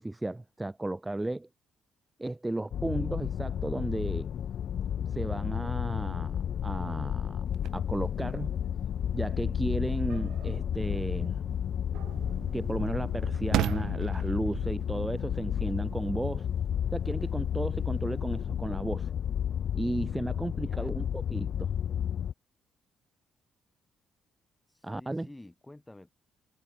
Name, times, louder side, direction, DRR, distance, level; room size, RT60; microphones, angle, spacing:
voice 1, 0.0-1.5 2.2-4.3 5.1-7.4 7.7-8.5 9.1-11.4 12.5-16.5 16.9-19.1 19.7-21.7 24.8-25.3, right 2 dB, 10° right, 1.1 m, -34 dB
sound 1, 2.7-22.3, left 9 dB, 60° left, 1.9 m, -32 dB
sound 2, 7.5-18.4, right 13 dB, 80° right, 6.6 m, -40 dB
voice 2, 20.5-21.1 24.7-26.1, left 1 dB, 10° left, 7.7 m, -51 dB
cardioid pair, 100°, 0 cm